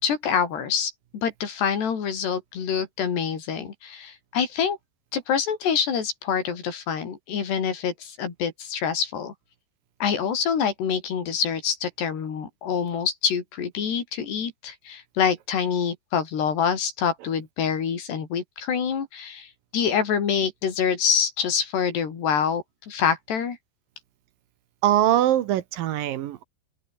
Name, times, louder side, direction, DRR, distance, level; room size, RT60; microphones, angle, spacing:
voice 1, 0.0-4.8 5.1-9.3 10.0-23.6, left 7 dB, 90° left, 6.1 m, -26 dB
voice 2, 24.8-26.4, right 12 dB, 70° right, 2.6 m, -22 dB
open air
omnidirectional pair, 4.6 m